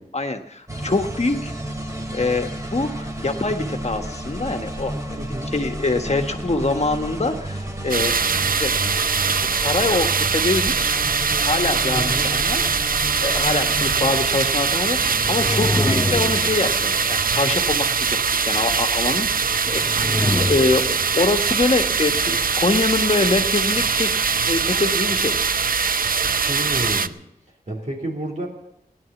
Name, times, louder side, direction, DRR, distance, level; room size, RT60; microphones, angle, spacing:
voice 1, 0.1-1.5 2.1-5.2 5.5-8.1 8.6-8.7 9.0-10.9 11.4-12.9 13.2-18.2 18.4-20.0 20.3-25.4, left 3 dB, 45° left, 6 dB, 1.5 m, -24 dB
sound 1, 0.7-14.3, right 1 dB, 20° right, 2.4 m, -31 dB
voice 2, 5.2-5.5 11.9-12.3 26.5-27.2 27.7-28.5, right 1 dB, 55° right, -2 dB, 3.4 m, -29 dB
sound 2, 7.9-27.1, right 5 dB, 70° right, 0.5 m, -22 dB
sound 3, 14.5-17.3 19.4-21.3, left 2 dB, 20° left, 0.7 m, -26 dB
16.5 x 11.0 x 7.2 m, 0.79 s
wide cardioid pair, 80°, 15 cm